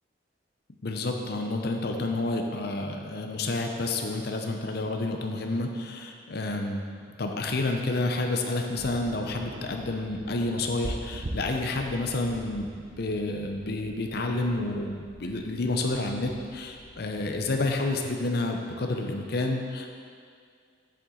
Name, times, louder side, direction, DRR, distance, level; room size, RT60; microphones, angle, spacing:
voice 1, 0.8-12.7 13.0-20.0, left 2 dB, 55° left, 3 dB, 0.7 m, -29 dB
sound 1, 8.8-17.7, right 1 dB, 45° right, 0.6 m, -43 dB
7.5 x 7.1 x 3.9 m, 2.2 s
head